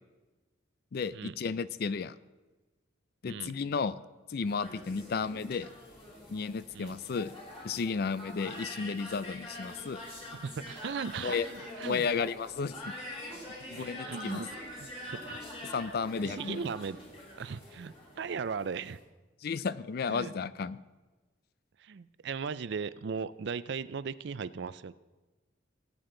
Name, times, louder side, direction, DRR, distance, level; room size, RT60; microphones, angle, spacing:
voice 1, 0.9-2.2 3.2-4.0 4.3-5.7 6.3-7.3 7.6-10.0 11.2-11.5 11.8-12.9 13.7-14.4 15.6-16.6 19.4-20.8, left 5 dB, 50° left, 16 dB, 0.4 m, -33 dB
voice 2, 3.3-3.6 6.7-6.9 8.4-8.6 10.3-12.1 13.8-14.5 14.7-15.4 16.2-17.0 17.4-19.0 20.1-20.3 21.8-24.9, right 5 dB, 60° right, 16 dB, 0.4 m, -38 dB
sound 1, 4.4-19.0, left 1 dB, 30° left, 3.1 m, -45 dB
18.0 x 8.6 x 3.8 m, 1.2 s
head